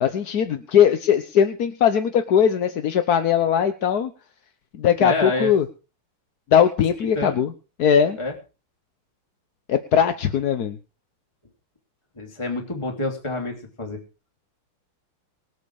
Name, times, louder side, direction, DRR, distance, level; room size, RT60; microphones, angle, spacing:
voice 1, 0.0-4.1 4.8-5.6 6.5-7.5 7.8-8.2 9.7-10.8, left 8 dB, 55° left, 9 dB, 1.3 m, -19 dB
voice 2, 5.0-5.5 7.1-7.4 8.2-8.3 12.2-14.0, left 2 dB, 15° left, 2 dB, 3.1 m, -27 dB
24.0 x 8.1 x 4.9 m, 0.33 s
omnidirectional pair, 2.4 m